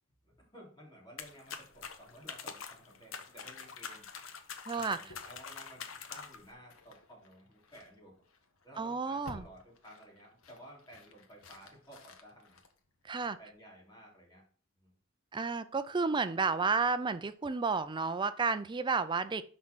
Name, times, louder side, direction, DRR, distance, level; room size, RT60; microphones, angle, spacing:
voice 1, 0.2-4.1 4.7-5.8 6.1-8.2 8.6-12.6 13.2-14.4 14.8-14.9, right 1 dB, 20° left, -3 dB, 3.4 m, -55 dB
sound 1, 1.2-6.5, left 6 dB, 70° left, 1.0 m, -45 dB
voice 2, 4.7-5.0 8.8-9.5 13.1-13.4 15.3-19.4, right 4 dB, 20° right, 13 dB, 0.4 m, -31 dB
sound 2, 5.1-13.5, left 2 dB, 90° left, 1.2 m, -56 dB
6.1 x 5.4 x 6.1 m, 0.43 s
head